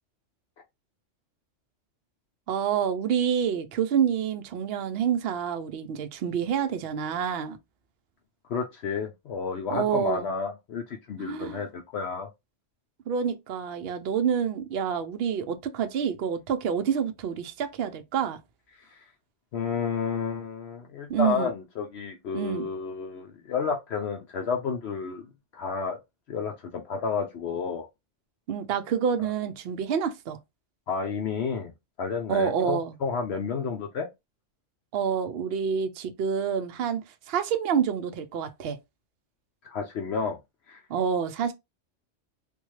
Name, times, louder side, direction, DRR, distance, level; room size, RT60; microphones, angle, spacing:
voice 1, 2.5-7.6 9.7-10.3 11.2-11.6 13.1-18.4 21.1-21.5 22.3-22.7 28.5-30.4 32.3-32.9 34.9-37.0 37.3-38.8 40.9-41.5, right 7 dB, 60° right, 0.7 m, -27 dB
voice 2, 8.5-12.3 18.8-19.0 19.5-25.3 25.5-26.0 26.3-27.9 30.9-31.7 32.0-34.1 39.6-40.4 40.7-40.8, left 5 dB, 65° left, 0.9 m, -31 dB
3.5 x 2.3 x 3.1 m
omnidirectional pair, 1.2 m